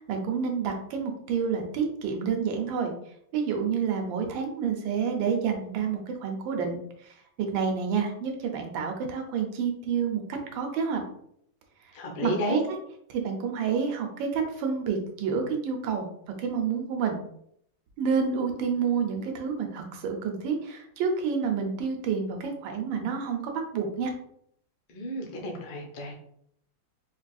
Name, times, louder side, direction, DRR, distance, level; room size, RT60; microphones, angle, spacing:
voice 1, 0.1-2.9 3.3-6.8 7.5-11.0 12.2-12.6 13.1-16.1 16.4-17.2 18.0-24.1, right 6 dB, 80° right, 3 dB, 1.4 m, -29 dB
voice 2, 11.9-12.6 24.9-26.1, equal, 85° left, 1 dB, 1.5 m, -31 dB
4.6 x 2.5 x 2.3 m, 0.70 s
omnidirectional pair, 2.1 m